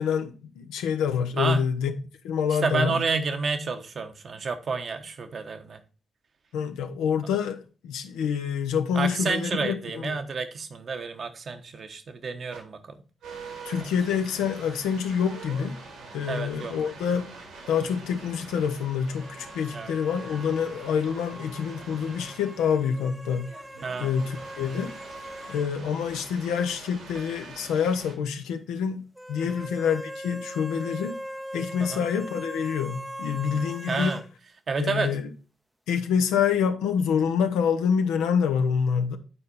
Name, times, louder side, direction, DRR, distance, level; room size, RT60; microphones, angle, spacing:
voice 1, 0.0-1.9 2.2-2.9 6.5-10.1 13.6-15.8 16.1-17.3 17.7-23.5 24.0-24.9 25.5-29.0 29.3-31.2 31.5-34.1 34.7-35.3 35.9-39.2, left 7 dB, 75° left, 0.7 m, -27 dB
voice 2, 2.6-5.8 8.9-13.0 13.8-13.9 16.3-16.7 19.7-19.9 23.8-24.1 29.5-29.7 31.8-32.1 33.9-34.2 34.7-35.2, right 4 dB, 55° right, 1.0 m, -30 dB
sound 1, 12.5-12.6 13.2-28.1, right 4 dB, 80° right, 2.2 m, -45 dB
sound 2, 19.2-25.7 26.0-26.1 29.2-34.3, right 1 dB, 5° right, 0.6 m, -41 dB
8.7 x 4.3 x 4.1 m
hypercardioid pair, 40°, 0 cm